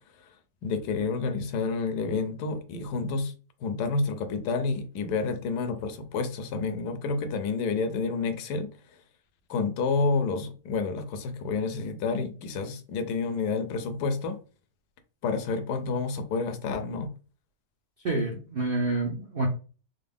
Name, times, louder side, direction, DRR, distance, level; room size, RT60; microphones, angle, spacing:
voice 1, 0.6-3.3 3.6-8.7 9.5-14.4 15.2-17.1, left 4 dB, 70° left, 1.1 m, -29 dB
voice 2, 18.0-19.5, right 2 dB, 50° right, 0.7 m, -28 dB
3.9 x 2.1 x 3.5 m
omnidirectional pair, 2.0 m